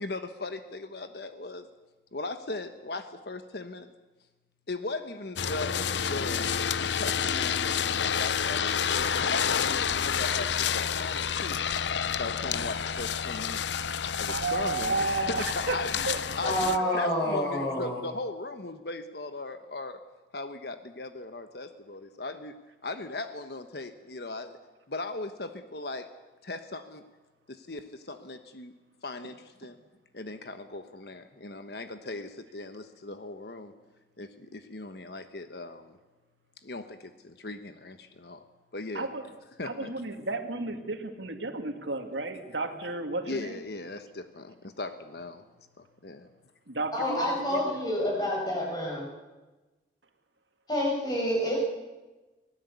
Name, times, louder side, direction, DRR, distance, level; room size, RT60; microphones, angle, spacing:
voice 1, 0.0-1.7 2.1-3.9 4.7-13.6 14.2-16.1 16.4-20.0 20.3-22.6 22.8-24.6 24.9-26.1 26.4-27.0 27.5-28.7 29.0-29.8 30.1-33.7 34.2-36.0 36.6-38.4 38.7-39.1 39.6-39.9 43.2-45.4 45.8-46.3, left 2 dB, 60° left, 9 dB, 1.2 m, -38 dB
sound 1, 5.4-16.8, left 7 dB, 75° left, 0.7 m, -29 dB
voice 2, 14.3-15.8 16.1-17.4 17.6-17.7 38.9-39.2 39.6-43.5 46.7-47.8, right 3 dB, 80° right, 6 dB, 2.4 m, -33 dB
voice 3, 16.4-18.0 46.9-49.0 50.7-51.6, left 1 dB, 20° left, -2 dB, 7.1 m, -28 dB
24.5 x 17.5 x 8.3 m, 1.2 s
head